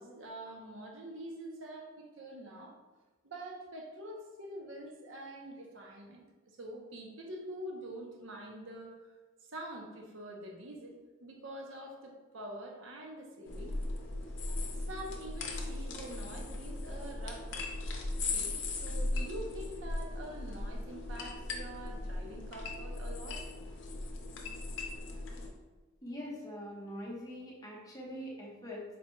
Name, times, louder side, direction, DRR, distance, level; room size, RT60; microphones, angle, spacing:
voice 1, 0.0-2.8 3.2-8.9 9.4-13.8 14.7-17.5 18.2-23.4, right 1 dB, 65° right, 1 dB, 0.7 m, -45 dB
sound 1, 13.4-25.5, left 2 dB, 60° left, 0.6 m, -38 dB
voice 2, 26.0-28.8, equal, 20° left, -3 dB, 0.7 m, -43 dB
4.3 x 2.2 x 4.4 m, 1.2 s
head